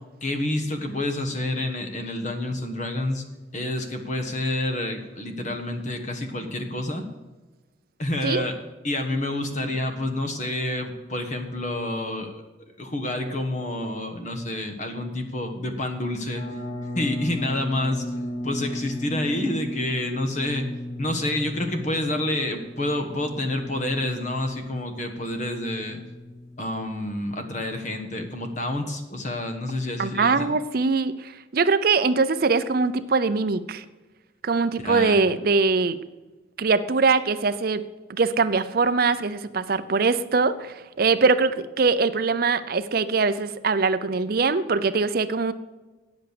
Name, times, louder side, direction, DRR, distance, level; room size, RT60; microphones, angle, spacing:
voice 1, 0.2-3.2 3.5-7.1 8.0-8.6 8.8-12.4 12.8-16.6 16.9-18.2 18.4-20.7 21.0-26.0 26.6-30.5 34.8-35.2, left 1 dB, 40° left, 6 dB, 1.3 m, -28 dB
sound 1, 16.4-27.3, left 1 dB, 15° left, 4.4 m, -36 dB
voice 2, 30.0-33.8 34.4-36.0 36.6-37.8 38.1-45.5, right 4 dB, 50° right, 12 dB, 0.5 m, -22 dB
9.0 x 8.0 x 6.7 m, 1.2 s
head